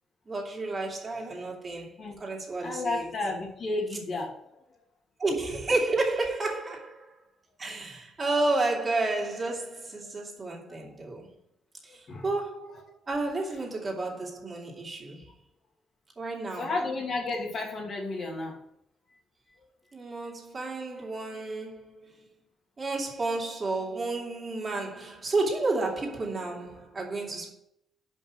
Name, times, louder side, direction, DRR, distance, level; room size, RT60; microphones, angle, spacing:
voice 1, 0.3-3.1 5.2-7.1 7.6-11.3 11.8-15.3 16.2-16.8 19.9-22.3 22.8-27.5, right 2 dB, 30° right, 2.4 m, -31 dB
voice 2, 2.6-4.3 12.1-12.2 16.6-18.6, left 2 dB, 50° left, 2.3 m, -32 dB
5.4 x 5.4 x 6.2 m
cardioid pair, 90°, 0 cm